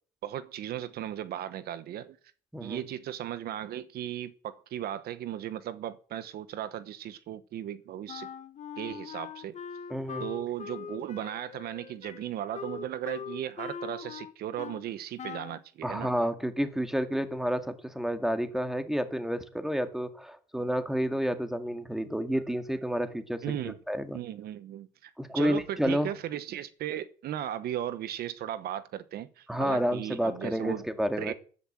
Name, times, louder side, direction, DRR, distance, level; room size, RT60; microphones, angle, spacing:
voice 1, 0.2-2.2 2.6-8.3 8.8-9.6 10.2-16.1 23.4-23.8 24.1-30.9 31.2-31.3, right 11 dB, 70° right, 1.0 m, -36 dB
Wind instrument woodwind instrument, 8.1-14.9 15.2-15.6, left 7 dB, 40° left, 1.2 m, -41 dB
voice 2, 9.9-10.3 15.8-23.4 23.9-24.2 25.2-26.1 29.5-31.3, equal, ahead, 2.0 m, -30 dB
13.5 x 11.0 x 7.4 m
cardioid pair, 110°, 17 cm